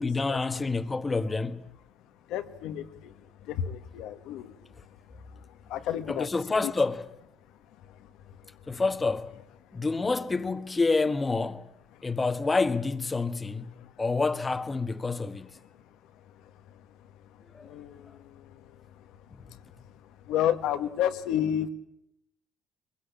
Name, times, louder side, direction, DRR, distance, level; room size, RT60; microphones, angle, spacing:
voice 1, 0.0-1.7 6.1-7.1 8.7-9.4 9.7-11.7 12.0-15.6 17.5-17.7 18.1-18.2 19.3-19.6, left 3 dB, 20° left, 1.4 m, -28 dB
voice 2, 2.3-3.1 3.4-4.6 5.7-6.3 13.8-13.9 17.6-18.5 20.3-21.7, left 10 dB, 75° left, 1.6 m, -30 dB
22.5 x 22.0 x 8.7 m
cardioid pair, 105°, 0 cm